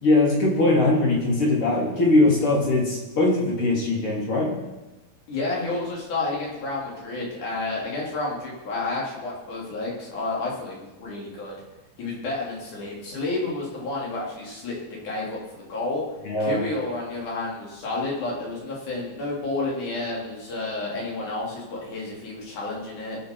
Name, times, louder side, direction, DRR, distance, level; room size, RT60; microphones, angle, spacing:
voice 1, 0.0-4.6 16.2-16.6, left 2 dB, 40° left, -3 dB, 3.0 m, -21 dB
voice 2, 5.3-11.5 12.0-15.4 15.7-16.0 16.4-23.2, left 2 dB, 55° left, -4 dB, 4.5 m, -30 dB
21.0 x 7.3 x 4.6 m, 1.1 s
omnidirectional pair, 4.3 m